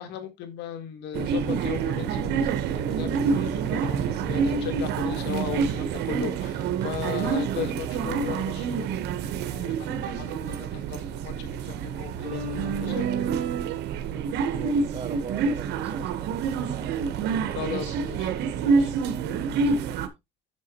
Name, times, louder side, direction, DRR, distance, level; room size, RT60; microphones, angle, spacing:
voice 1, 0.0-13.1 17.5-18.3 18.6-18.9, left 9 dB, 90° left, 1.6 m, -37 dB
sound 1, 1.1-20.1, right 5 dB, 80° right, 1.1 m, -27 dB
voice 2, 12.8-13.9 14.4-17.0 19.4-19.9, right 7 dB, 35° right, 1.2 m, -42 dB
8.3 x 6.6 x 2.9 m
cardioid pair, 110°, 17 cm